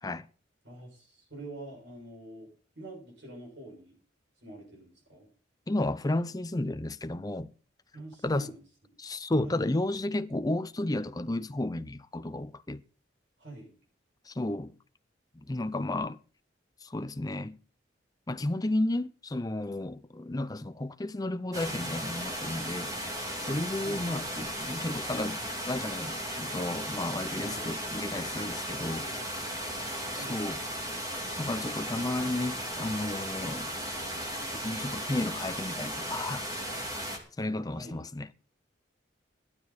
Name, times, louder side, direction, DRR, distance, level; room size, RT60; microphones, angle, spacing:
voice 1, 0.6-2.5 2.7-3.9 4.4-5.3 7.9-8.6 9.4-9.6 13.4-13.7 23.8-24.1 27.4-27.7 28.6-29.2 30.2-30.4 37.7-38.0, right 2 dB, 70° right, 6.7 m, -46 dB
voice 2, 5.7-7.5 8.2-8.5 9.0-12.8 14.2-14.7 15.3-16.2 16.8-17.6 18.3-22.9 23.4-25.4 25.6-29.1 30.1-30.6 31.4-33.7 34.5-36.5 37.4-38.3, left 1 dB, 20° left, 0.6 m, -32 dB
sound 1, 21.5-37.2, equal, 20° right, 2.7 m, -36 dB
15.5 x 12.0 x 4.2 m
head